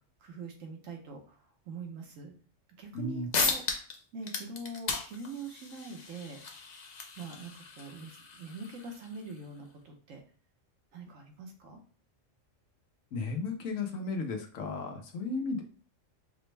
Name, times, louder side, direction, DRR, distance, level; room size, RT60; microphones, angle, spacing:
voice 1, 0.2-2.3 2.8-3.6 4.1-6.7 7.2-10.2 10.9-11.8, right 3 dB, 80° right, 3 dB, 1.2 m, -44 dB
voice 2, 2.9-3.3 13.1-15.6, left 3 dB, 80° left, 3 dB, 1.2 m, -34 dB
sound 1, 3.0-3.1 3.3-4.0 4.2-9.4, left 4 dB, 50° left, 0.5 m, -36 dB
5.0 x 2.1 x 3.2 m, 0.40 s
omnidirectional pair, 1.3 m